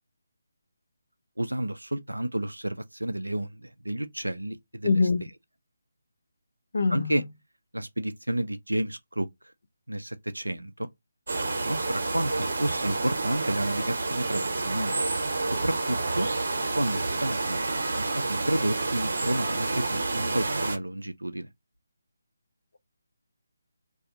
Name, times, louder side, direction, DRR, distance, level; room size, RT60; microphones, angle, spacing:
voice 1, 1.4-5.3 6.9-7.2 7.7-9.3 9.9-10.9 11.7-15.1 15.4-16.3 16.8-21.5, right 1 dB, 90° right, 0.3 m, -31 dB
voice 2, 4.8-5.2 6.7-7.2, left 3 dB, 60° left, 0.4 m, -23 dB
sound 1, 11.3-20.8, right 3 dB, 60° right, 0.8 m, -29 dB
2.5 x 2.3 x 2.7 m
figure-of-eight pair, 150°, 0 cm